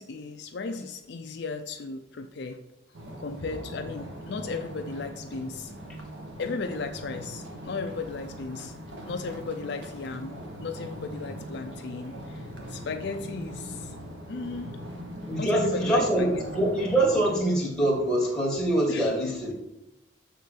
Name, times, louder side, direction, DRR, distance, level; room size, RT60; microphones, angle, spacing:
voice 1, 0.0-2.6 3.2-5.7 6.4-8.7 9.1-13.9 14.3-14.8 15.4-16.4 18.9-19.1, left 4 dB, 60° left, 5 dB, 0.5 m, -35 dB
sound 1, 2.9-17.4, equal, 75° right, 1.4 m, -40 dB
voice 2, 15.3-19.5, right 1 dB, 5° left, -3 dB, 1.9 m, -24 dB
6.9 x 3.8 x 6.4 m, 0.86 s
head